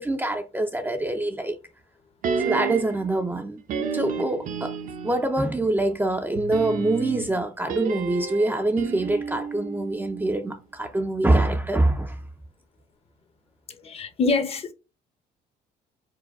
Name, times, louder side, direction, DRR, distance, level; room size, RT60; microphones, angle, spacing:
voice 1, 0.0-1.6 2.4-3.6 3.9-4.7 5.0-12.2, right 2 dB, 10° right, 0.5 m, -25 dB
sound 1, 2.2-3.1 3.7-5.3 6.3-10.6 10.8-10.9, right 6 dB, 50° right, 0.7 m, -31 dB
voice 2, 13.8-14.7, left 3 dB, 35° left, 0.7 m, -25 dB
4.7 x 2.2 x 3.4 m
cardioid pair, 110°, 17 cm